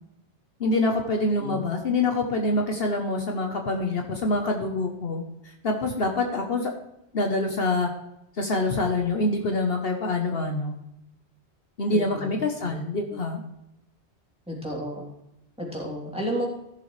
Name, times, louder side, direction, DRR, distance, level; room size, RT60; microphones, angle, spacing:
voice 1, 0.6-5.2 5.6-6.7 7.1-7.9 8.4-10.7 11.8-13.4, left 2 dB, 60° left, 3 dB, 1.3 m, -25 dB
voice 2, 11.9-12.3 12.6-12.7 14.5-15.0 15.6-16.5, equal, 5° right, -4 dB, 3.1 m, -32 dB
15.0 x 6.8 x 3.3 m, 0.85 s
omnidirectional pair, 1.1 m